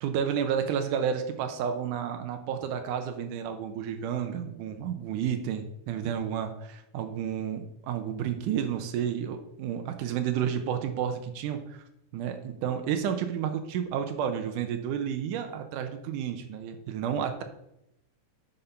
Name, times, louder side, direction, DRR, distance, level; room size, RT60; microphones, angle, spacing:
voice 1, 0.0-11.8 12.1-17.4, right 8 dB, 90° right, 7 dB, 2.4 m, -31 dB
8.8 x 5.7 x 5.8 m, 0.83 s
omnidirectional pair, 3.6 m